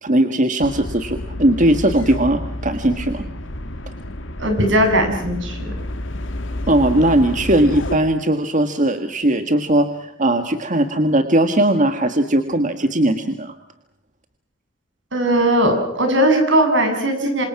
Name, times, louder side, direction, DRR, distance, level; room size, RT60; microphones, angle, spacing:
voice 1, 0.0-3.2 6.7-13.6, right 1 dB, 40° right, 7 dB, 1.7 m, -18 dB
sound 1, 0.6-8.0, left 1 dB, 85° left, 2.2 m, -30 dB
voice 2, 4.4-5.7 15.1-17.5, right 1 dB, 75° right, 5 dB, 7.7 m, -18 dB
27.5 x 26.5 x 5.9 m, 0.69 s
head